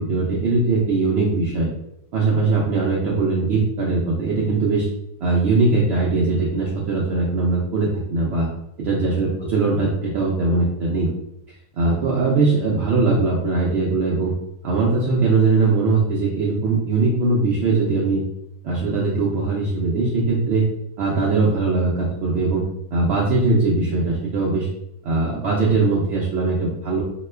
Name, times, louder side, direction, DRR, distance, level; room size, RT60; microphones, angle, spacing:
voice 1, 0.0-1.7 2.1-4.9 5.2-8.5 8.8-11.1 11.8-14.3 14.6-18.2 18.6-20.6 21.0-22.6 22.9-24.7 25.0-27.0, right 3 dB, 70° right, -4 dB, 0.6 m, -20 dB
2.9 x 2.2 x 3.2 m, 0.82 s
omnidirectional pair, 1.6 m